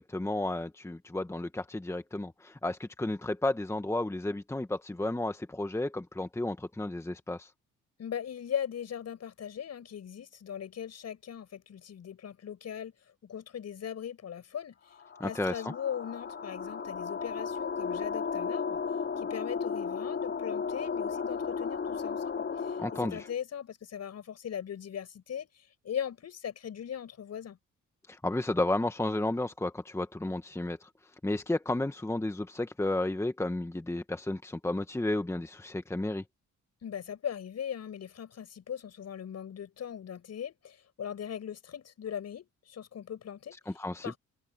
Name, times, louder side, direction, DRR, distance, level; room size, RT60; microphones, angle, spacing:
voice 1, 0.0-7.5 15.2-15.7 22.8-23.3 28.1-30.9 31.2-36.2 43.7-44.1, left 2 dB, 10° left, 1.4 m, -32 dB
voice 2, 8.0-12.9 13.2-14.8 15.2-18.8 19.2-22.8 23.1-27.6 36.8-43.6 44.0-44.2, left 8 dB, 60° left, 6.7 m, -39 dB
sound 1, 14.9-23.3, left 5 dB, 40° left, 3.3 m, -34 dB
cardioid pair, 90°, 30 cm